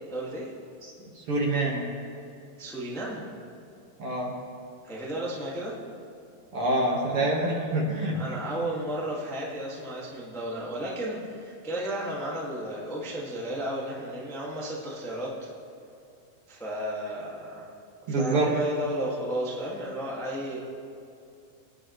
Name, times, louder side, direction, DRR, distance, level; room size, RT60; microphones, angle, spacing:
voice 1, 0.1-0.5 2.6-3.2 4.8-5.7 8.1-15.3 16.5-17.7 18.1-20.6, right 1 dB, 5° left, -5 dB, 0.3 m, -33 dB
voice 2, 1.2-1.8 4.0-4.3 6.5-8.2 18.1-18.5, right 2 dB, 50° right, -2 dB, 1.9 m, -26 dB
25.5 x 9.5 x 3.2 m, 2.6 s
omnidirectional pair, 4.4 m